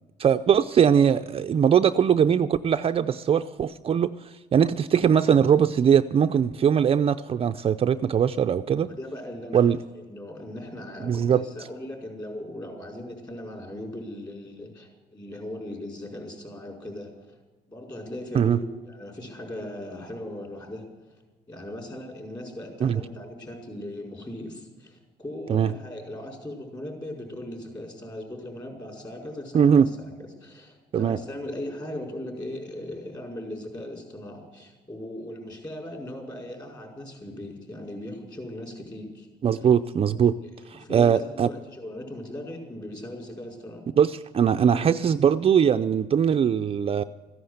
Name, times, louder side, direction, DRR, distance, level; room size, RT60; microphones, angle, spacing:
voice 1, 0.2-8.9 9.5-9.8 11.0-11.4 18.3-18.6 22.8-23.0 25.5-25.7 29.5-29.9 30.9-31.2 39.4-40.3 40.7-41.5 44.0-47.0, right 8 dB, 35° right, 7 dB, 0.5 m, -21 dB
voice 2, 8.9-17.4 17.7-20.8 21.5-30.1 30.4-39.3 40.4-43.9, left 1 dB, 25° left, 1 dB, 5.1 m, -38 dB
14.5 x 10.5 x 7.9 m, 1.3 s
cardioid pair, 110°, 17 cm